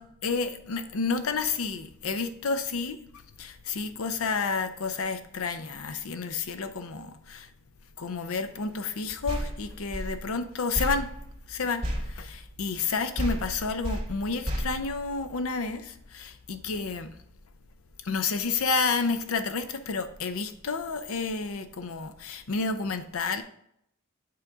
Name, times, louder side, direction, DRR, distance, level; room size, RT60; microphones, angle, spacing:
voice 1, 0.2-3.0 3.4-7.5 8.0-11.1 11.5-17.1 18.0-23.4, left 4 dB, 85° left, 9 dB, 0.6 m, -30 dB
sound 1, 9.3-12.9 13.2-15.6, equal, 30° right, 2.1 m, -34 dB
8.6 x 3.6 x 3.9 m, 0.72 s
head